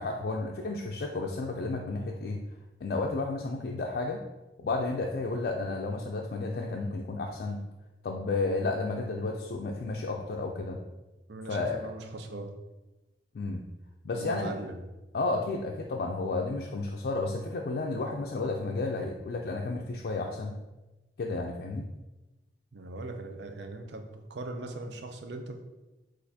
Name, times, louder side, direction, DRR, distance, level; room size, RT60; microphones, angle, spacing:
voice 1, 0.0-2.4 2.8-4.2 4.6-7.6 8.0-10.8 11.5-11.8 13.3-13.6 14.0-14.5 15.1-20.5 21.2-21.9, left 3 dB, 60° left, 0 dB, 0.4 m, -32 dB
voice 2, 11.3-12.5 14.1-14.9 22.7-25.6, right 2 dB, 75° right, 5 dB, 0.5 m, -39 dB
6.3 x 2.5 x 2.8 m, 1.1 s
head